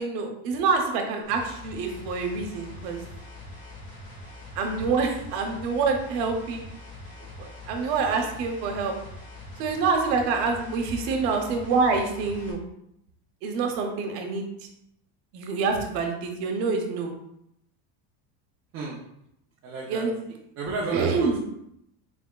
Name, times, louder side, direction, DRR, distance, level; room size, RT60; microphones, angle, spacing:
voice 1, 0.0-3.0 4.5-6.6 7.4-8.9 9.6-12.6 13.4-14.7 15.3-17.1 19.9-20.2 20.9-21.4, right 4 dB, 85° right, 4 dB, 0.9 m, -26 dB
sound 1, 1.2-12.5, left 2 dB, 50° left, 1.4 m, -43 dB
voice 2, 19.6-20.1 20.6-21.4, right 3 dB, 30° right, -5 dB, 0.5 m, -31 dB
3.9 x 3.4 x 2.3 m, 0.78 s
cardioid pair, 155°, 47 cm